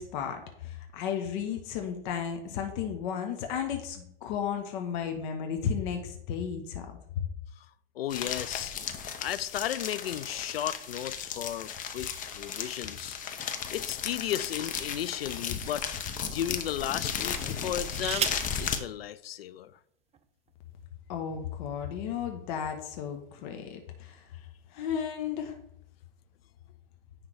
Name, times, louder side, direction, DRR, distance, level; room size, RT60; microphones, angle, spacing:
voice 1, 0.0-6.9 21.1-24.2 24.7-25.5, left 8 dB, 55° left, 1.2 m, -34 dB
voice 2, 8.0-8.7 9.2-13.2 13.7-15.9 16.3-18.3 18.6-19.7, left 11 dB, 80° left, 0.5 m, -34 dB
sound 1, 8.1-18.8, left 7 dB, 25° left, 0.8 m, -35 dB
sound 2, 13.8-15.0 15.7-15.9 17.5-18.6 19.7-19.8 20.1-20.5, right 8 dB, 20° right, 0.6 m, -35 dB
9.8 x 3.6 x 4.7 m
hypercardioid pair, 100°, 29 cm